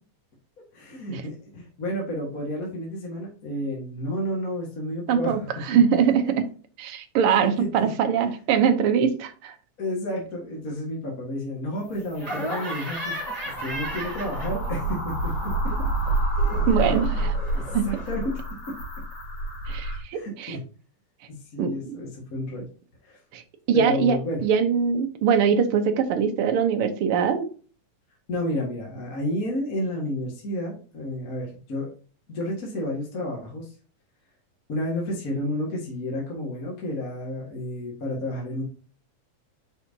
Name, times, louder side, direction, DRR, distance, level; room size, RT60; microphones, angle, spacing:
voice 1, 0.7-5.5 7.3-7.9 9.8-13.2 13.5-15.7 16.8-17.0 17.5-18.4 18.7-18.8 20.1-20.6 21.3-22.6 23.0-23.2 23.7-24.4 28.3-31.9 32.3-33.7 34.7-38.6, left 1 dB, 35° left, -2 dB, 1.6 m, -31 dB
voice 2, 5.1-6.2 6.8-9.5 16.7-17.3 17.7-17.9 19.7-20.6 21.6-22.0 23.3-23.4 23.7-27.5, right 7 dB, 75° right, 7 dB, 1.3 m, -22 dB
sound 1, 11.9-20.0, right 2 dB, 55° left, 3.4 m, -29 dB
Laughter, 12.2-14.9 15.2-18.1, right 1 dB, 10° right, 3.0 m, -35 dB
7.1 x 5.6 x 2.7 m, 0.39 s
omnidirectional pair, 3.4 m